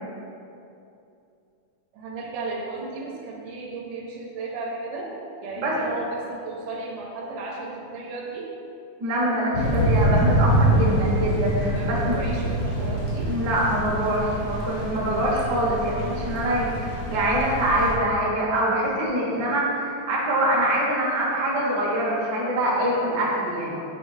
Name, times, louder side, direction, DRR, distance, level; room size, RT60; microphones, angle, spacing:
voice 1, 1.9-5.1 5.4-8.5 11.7-13.3, right 3 dB, 80° right, -2 dB, 2.2 m, -34 dB
voice 2, 9.0-12.4 13.3-23.7, right 1 dB, 55° right, -5 dB, 1.2 m, -24 dB
Thunder / Rain, 9.5-17.9, right 1 dB, 70° left, 1.0 m, -25 dB
7.8 x 3.1 x 4.9 m, 2.7 s
omnidirectional pair, 3.5 m